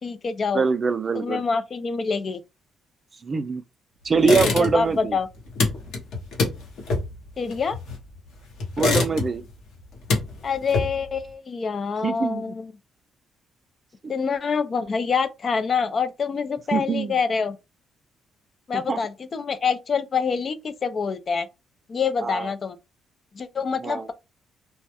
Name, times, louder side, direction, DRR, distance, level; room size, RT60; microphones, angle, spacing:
voice 1, 0.0-0.6 1.1-2.4 4.2-5.3 7.4-7.8 10.4-12.7 14.1-17.6 18.7-21.5 21.9-22.8 23.3-24.1, left 5 dB, 45° left, 0.3 m, -26 dB
voice 2, 0.5-1.4 3.2-3.6 4.0-5.2 8.8-9.4 12.0-12.5 16.7-17.2 18.7-19.0 22.2-22.5 23.8-24.1, right 5 dB, 35° right, 0.3 m, -23 dB
sound 1, 4.2-5.0 5.2-8.2 8.6-9.5 9.8-11.2, left 3 dB, 80° left, 0.8 m, -25 dB
2.2 x 2.0 x 2.8 m
cardioid pair, 90°, 0 cm